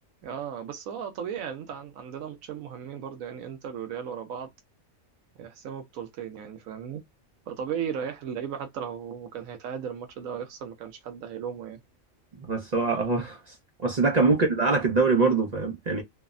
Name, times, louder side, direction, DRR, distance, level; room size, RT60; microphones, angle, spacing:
voice 1, 0.2-4.5 5.4-7.0 7.5-11.8, right 8 dB, 80° right, 1.0 m, -36 dB
voice 2, 12.5-13.4 13.8-16.0, right 3 dB, 45° right, 0.6 m, -23 dB
3.2 x 2.0 x 2.4 m
omnidirectional pair, 1.4 m